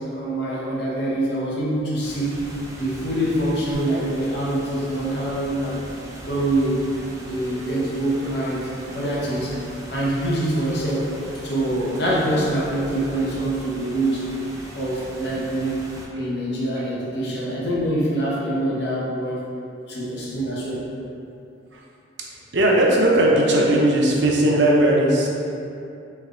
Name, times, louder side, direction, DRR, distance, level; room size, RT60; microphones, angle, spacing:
voice 1, 0.0-2.4 2.7-5.9 6.2-6.9 7.3-9.6 9.9-11.1 11.4-14.3 14.7-15.8 16.2-19.4 19.9-20.9, right 1 dB, 60° left, -5 dB, 0.8 m, -25 dB
sound 1, 2.0-16.1, equal, 15° right, 0.4 m, -40 dB
voice 2, 22.5-25.3, right 1 dB, 70° right, -3 dB, 0.6 m, -17 dB
3.3 x 3.3 x 3.7 m, 2.7 s
head